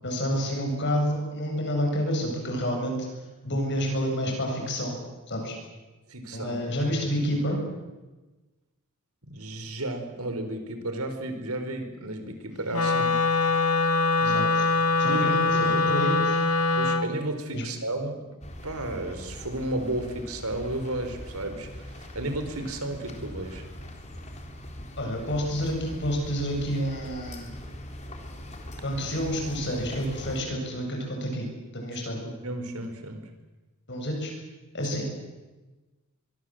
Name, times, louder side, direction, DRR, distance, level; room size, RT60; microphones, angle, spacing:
voice 1, 0.0-3.1 3.4-4.9 5.3-5.6 6.3-7.6 14.2-14.7 15.0-16.4 17.5-17.6 25.0-27.6 28.8-31.5 31.7-32.2 33.9-34.3 34.7-35.2, equal, 55° left, 2 dB, 7.7 m, -29 dB
voice 2, 6.1-6.6 9.2-13.2 15.0-15.8 16.7-18.3 18.6-23.7 32.4-33.3 34.9-35.0, right 1 dB, 90° right, 7 dB, 4.3 m, -33 dB
Wind instrument woodwind instrument, 12.7-17.1, left 3 dB, 90° left, 1.7 m, -23 dB
sound 1, 18.4-30.4, left 1 dB, 30° left, 3.4 m, -41 dB
25.0 x 22.5 x 7.9 m, 1.2 s
head